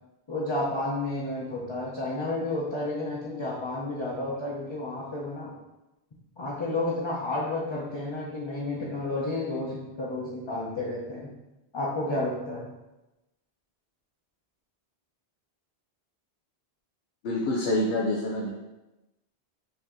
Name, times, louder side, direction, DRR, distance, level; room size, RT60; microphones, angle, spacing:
voice 1, 0.3-5.5 6.4-11.3 11.7-12.7, left 2 dB, 30° left, -6 dB, 0.6 m, -31 dB
voice 2, 17.2-18.5, left 1 dB, 85° left, -2 dB, 0.9 m, -26 dB
5.5 x 2.6 x 3.6 m, 1.0 s
omnidirectional pair, 1.1 m